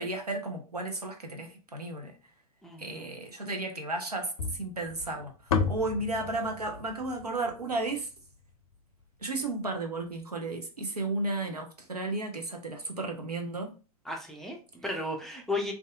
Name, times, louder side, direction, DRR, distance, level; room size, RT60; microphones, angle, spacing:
voice 1, 0.0-2.2 2.8-5.3 5.7-8.1 9.2-13.7, right 2 dB, 85° right, 0.6 m, -33 dB
voice 2, 2.6-3.1 14.1-15.7, left 2 dB, ahead, 0.4 m, -34 dB
sound 1, 4.4-8.7, left 5 dB, 70° left, 0.5 m, -34 dB
2.6 x 2.3 x 2.2 m
figure-of-eight pair, 95°, 19 cm